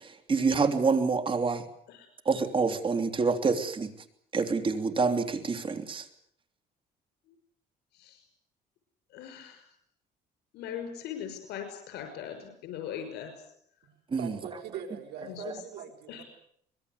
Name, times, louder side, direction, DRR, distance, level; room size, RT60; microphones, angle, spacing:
voice 1, 0.0-1.6 2.2-3.9 4.3-6.1 14.1-14.4 15.4-15.5, right 4 dB, 30° right, 8 dB, 3.1 m, -27 dB
voice 2, 7.9-8.3 9.1-9.8 10.5-13.5 15.2-15.6 16.1-16.2, left 9 dB, 80° left, 6 dB, 5.9 m, -40 dB
voice 3, 14.2-16.2, right 8 dB, 75° right, 5 dB, 4.3 m, -42 dB
25.0 x 21.0 x 8.2 m, 0.69 s
cardioid pair, 110°, 17 cm